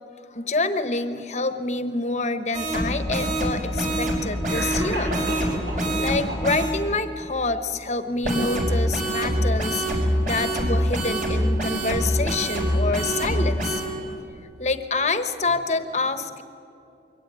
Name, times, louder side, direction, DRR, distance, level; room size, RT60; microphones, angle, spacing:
voice 1, 0.3-5.2 5.6-13.8 14.1-14.2 14.6-16.4, left 3 dB, 40° left, 9 dB, 1.1 m, -27 dB
sound 1, 2.5-6.7 8.2-13.9, equal, 45° right, 4.8 m, -25 dB
Cough, 4.5-5.9 6.3-6.9, right 1 dB, 75° right, 6.5 m, -32 dB
23.0 x 17.0 x 9.6 m, 2.7 s
head